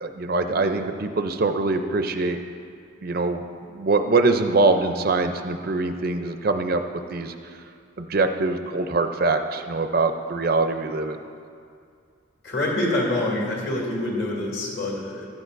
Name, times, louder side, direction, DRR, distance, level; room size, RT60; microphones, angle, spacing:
voice 1, 0.0-2.4 3.0-3.4 3.7-6.8 7.1-7.3 8.0-11.2, right 3 dB, 45° right, 7 dB, 0.5 m, -23 dB
voice 2, 12.4-15.3, left 1 dB, 55° left, -2 dB, 2.5 m, -26 dB
16.0 x 13.0 x 2.6 m, 2.3 s
head